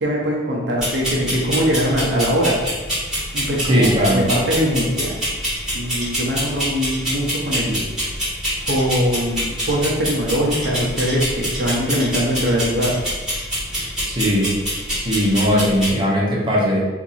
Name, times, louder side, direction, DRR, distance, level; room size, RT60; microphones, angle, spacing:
voice 1, 0.0-2.6 3.3-5.2 5.7-7.9 8.7-13.0, equal, 70° right, -2 dB, 0.6 m, -21 dB
sound 1, 0.8-15.9, equal, 5° right, 1.4 m, -26 dB
voice 2, 3.7-4.3 14.0-14.5 15.0-16.8, equal, 25° right, -5 dB, 0.7 m, -18 dB
2.8 x 2.5 x 3.9 m, 1.3 s
head